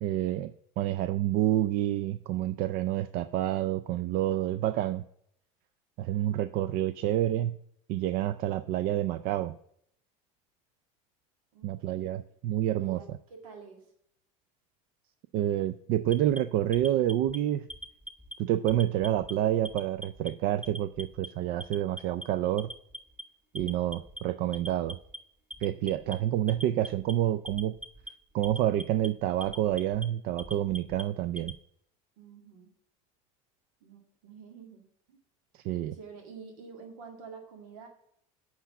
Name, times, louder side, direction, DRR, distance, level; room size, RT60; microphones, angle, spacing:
voice 1, 0.0-5.1 6.0-7.5 7.9-9.6 11.6-13.2 15.3-17.7 18.4-22.7 23.5-25.0 25.6-27.7 28.3-31.5 35.5-35.9, right 12 dB, 60° right, 14 dB, 0.5 m, -28 dB
voice 2, 11.5-12.3 12.8-13.8 32.2-32.7 33.8-35.2 35.7-37.9, right 5 dB, 85° right, 3 dB, 2.0 m, -49 dB
Alarm, 16.1-17.4 17.7-18.3 18.7-19.3 19.7-20.3 20.6-21.3 21.6-22.2 22.6-23.2 23.6-24.2 24.5-25.2 25.5-26.2 26.5-27.1 27.5-28.1 28.4-29.1 29.4-30.1 30.4-31.6, equal, 10° right, 1.0 m, -42 dB
8.1 x 5.9 x 7.4 m, 0.69 s
supercardioid pair, 120°, 17 cm